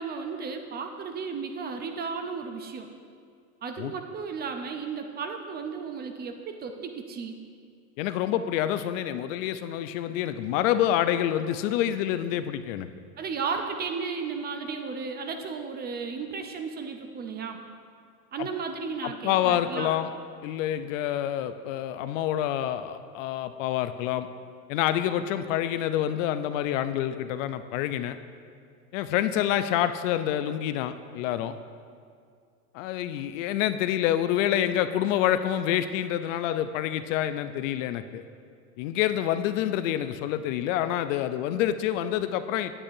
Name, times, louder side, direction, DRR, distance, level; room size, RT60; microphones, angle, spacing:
voice 1, 0.0-2.9 3.6-7.4 13.2-17.6 18.3-19.9, right 5 dB, 25° right, 6 dB, 0.4 m, -34 dB
voice 2, 8.0-12.9 18.4-18.5 19.0-20.1 20.4-24.3 24.7-28.2 28.9-31.5 32.7-38.2 38.8-42.7, left 11 dB, 60° left, 11 dB, 0.5 m, -27 dB
8.8 x 8.3 x 2.6 m, 2.2 s
hypercardioid pair, 95°, 45 cm